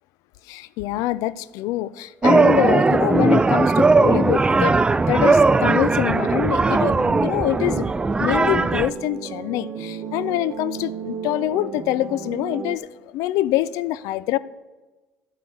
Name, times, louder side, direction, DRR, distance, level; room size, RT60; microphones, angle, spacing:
voice 1, 0.5-4.8 5.1-6.9 7.2-7.9 8.2-12.9 13.1-14.4, left 14 dB, 80° left, 18 dB, 0.4 m, -25 dB
sound 1, 2.2-8.9, right 3 dB, 15° right, 0.3 m, -18 dB
sound 2, 5.3-12.8, right 7 dB, 50° right, 0.8 m, -33 dB
11.5 x 3.9 x 7.8 m, 1.2 s
supercardioid pair, 90°, 6 cm